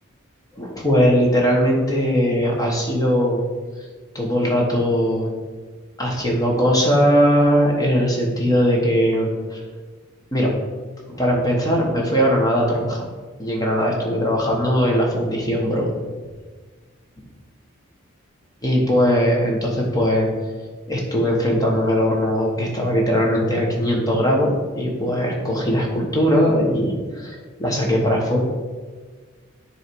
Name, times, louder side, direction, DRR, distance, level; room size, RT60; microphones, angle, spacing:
voice 1, 0.6-3.4 4.1-5.3 6.0-9.6 10.3-10.5 11.1-13.1 13.4-15.9 18.6-20.3 20.9-28.4, equal, 15° left, -1 dB, 1.1 m, -20 dB
9.7 x 3.2 x 4.6 m, 1.4 s
head